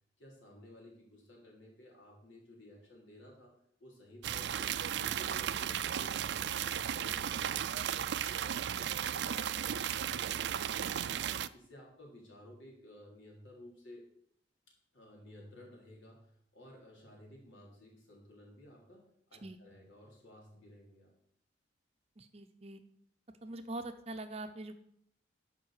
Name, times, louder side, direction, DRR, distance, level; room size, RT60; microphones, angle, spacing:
voice 1, 0.2-3.5 3.8-6.6 7.0-11.2 11.5-14.0 14.9-21.1, left 1 dB, 80° left, -1 dB, 3.8 m, -55 dB
sound 1, 4.2-11.5, right 9 dB, 60° right, 0.4 m, -35 dB
voice 2, 22.2-22.8 23.4-24.7, right 2 dB, 30° right, 8 dB, 0.7 m, -43 dB
11.5 x 5.3 x 6.5 m, 0.71 s
head